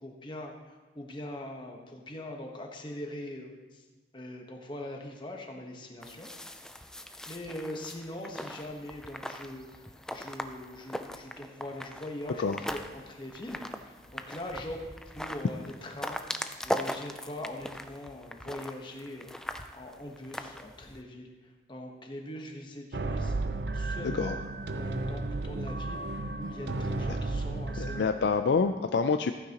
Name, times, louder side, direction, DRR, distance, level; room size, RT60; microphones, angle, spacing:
voice 1, 0.0-3.8 4.1-6.3 7.3-14.9 15.1-19.3 19.7-23.3 23.7-24.4 24.7-28.1, left 1 dB, 25° left, 2 dB, 1.1 m, -42 dB
sound 1, 6.0-21.0, equal, 5° left, 0.3 m, -40 dB
sound 2, 22.9-28.1, right 2 dB, 65° right, 0.6 m, -33 dB
voice 2, 27.8-29.3, left 5 dB, 75° left, 7 dB, 0.4 m, -27 dB
14.5 x 9.4 x 2.9 m, 1.2 s
head